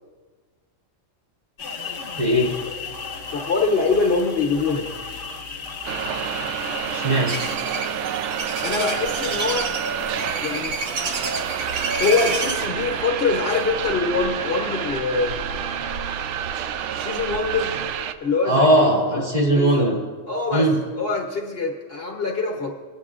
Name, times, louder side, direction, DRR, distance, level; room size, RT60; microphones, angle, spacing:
sound 1, 1.6-7.6, left 5 dB, 70° left, 1.4 m, -34 dB
voice 1, 2.2-2.5 6.9-7.3 18.4-20.0 20.5-20.8, right 1 dB, 35° right, -4 dB, 3.1 m, -19 dB
voice 2, 3.3-4.9 8.6-9.7 10.4-10.8 12.0-15.5 16.9-17.7 18.2-18.7 19.1-19.2 19.5-20.0 20.3-22.7, left 4 dB, 55° left, 1 dB, 1.1 m, -24 dB
sound 2, 5.8-18.1, right 8 dB, 70° right, 0.8 m, -29 dB
sound 3, 7.3-12.7, right 3 dB, 90° right, 1.6 m, -29 dB
19.5 x 9.4 x 2.4 m, 1.5 s
omnidirectional pair, 1.3 m